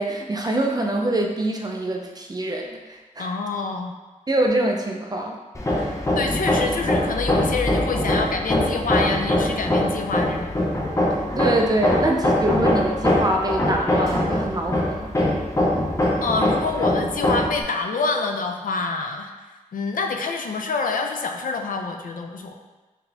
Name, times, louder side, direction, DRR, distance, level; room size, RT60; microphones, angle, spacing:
voice 1, 0.0-3.3 4.3-5.4 5.8-5.9 11.4-15.1, right 1 dB, 25° right, 1 dB, 0.4 m, -24 dB
voice 2, 3.2-3.9 6.1-10.5 16.2-19.3 19.7-22.6, left 4 dB, 70° left, 4 dB, 0.4 m, -26 dB
Hammer, 5.5-17.6, left 1 dB, 20° left, 0.6 m, -22 dB
3.9 x 2.7 x 3.4 m, 1.2 s
wide cardioid pair, 120°, 14 cm